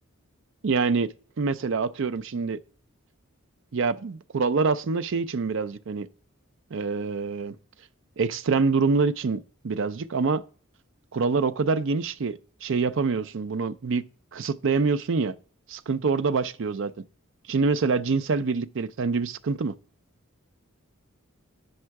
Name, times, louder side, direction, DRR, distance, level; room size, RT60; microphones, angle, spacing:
voice 1, 0.6-2.6 3.7-6.1 6.7-7.6 8.2-10.4 11.1-14.0 14.3-15.4 15.7-16.9 17.5-19.7, right 4 dB, 60° right, 0.5 m, -26 dB
8.6 x 5.5 x 4.6 m
head